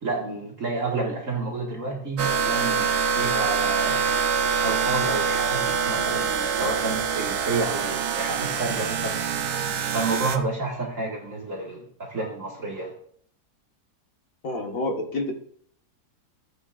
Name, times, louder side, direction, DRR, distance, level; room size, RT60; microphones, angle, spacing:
voice 1, 0.0-4.1 4.6-9.2 9.9-12.9, right 3 dB, 50° right, -2 dB, 2.4 m, -30 dB
sound 1, 2.2-10.4, right 6 dB, 70° right, 1.3 m, -25 dB
voice 2, 14.4-15.4, left 2 dB, 55° left, 1 dB, 2.0 m, -28 dB
16.0 x 9.0 x 2.6 m, 0.63 s
omnidirectional pair, 1.8 m